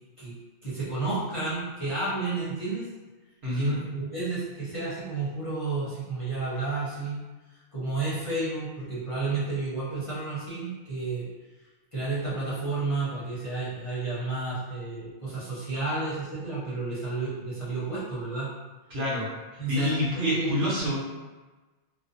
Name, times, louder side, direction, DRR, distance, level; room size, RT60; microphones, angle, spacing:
voice 1, 0.6-2.9 3.5-7.2 7.7-11.3 11.9-18.5 19.6-21.0, right 3 dB, 35° left, -11 dB, 0.7 m, -31 dB
voice 2, 3.4-3.8 18.9-19.3 19.5-21.0, left 1 dB, 65° right, -8 dB, 1.1 m, -27 dB
2.5 x 2.2 x 2.5 m, 1.2 s
omnidirectional pair, 1.2 m